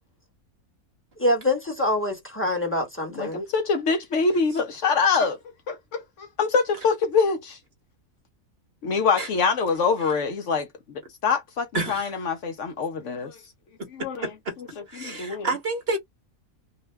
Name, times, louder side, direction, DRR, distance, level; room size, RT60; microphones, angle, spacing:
voice 1, 1.2-3.4, left 1 dB, 10° left, 1.0 m, -25 dB
voice 2, 3.2-5.4 5.7-7.6 8.8-13.4 14.0-14.3 15.0-15.5, left 5 dB, 65° left, 0.9 m, -25 dB
voice 3, 11.7-12.1 14.2-14.5 14.9-16.0, right 2 dB, 50° right, 1.0 m, -29 dB
2.7 x 2.1 x 3.2 m
omnidirectional pair, 1.5 m